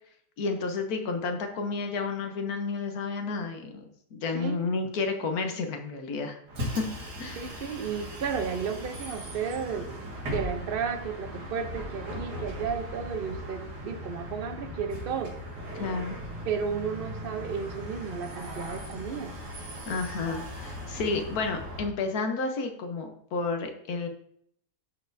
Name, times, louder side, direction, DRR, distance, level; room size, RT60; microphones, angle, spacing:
voice 1, 0.4-6.9 7.2-7.5 15.8-16.2 19.9-24.1, left 4 dB, 70° left, 5 dB, 1.3 m, -31 dB
Bus, 6.5-21.9, equal, 90° right, 2.4 m, -38 dB
voice 2, 7.4-9.9 10.3-15.4 16.5-19.3, right 6 dB, 55° right, 7 dB, 0.6 m, -33 dB
12.5 x 4.2 x 2.6 m, 0.66 s
omnidirectional pair, 1.7 m